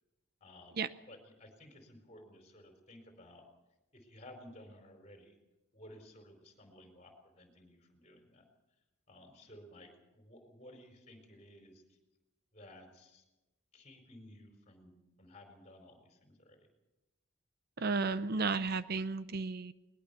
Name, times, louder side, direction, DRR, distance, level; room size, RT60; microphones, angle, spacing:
voice 1, 0.4-3.4 3.9-5.3 5.7-8.4 9.1-11.8 12.5-13.2 13.7-16.7, left 1 dB, 30° left, 4 dB, 4.5 m, -56 dB
voice 2, 17.8-19.7, right 4 dB, 50° right, 14 dB, 0.6 m, -33 dB
21.0 x 20.0 x 6.9 m, 1.0 s
head